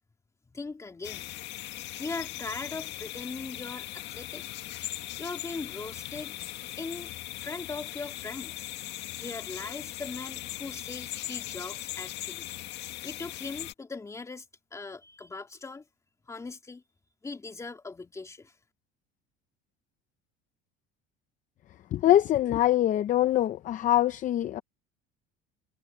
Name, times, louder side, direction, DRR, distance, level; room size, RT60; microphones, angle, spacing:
voice 1, 0.5-1.3 2.0-4.4 5.2-6.4 6.8-8.7 9.2-12.5 13.0-14.5 14.7-15.8 16.3-16.8 17.2-18.5, left 3 dB, 15° left, 2.9 m, -40 dB
sound 1, 1.0-13.7, left 15 dB, 60° left, 1.8 m, -39 dB
voice 2, 21.9-24.6, left 13 dB, 40° left, 0.7 m, -23 dB
cardioid pair, 135°, 21 cm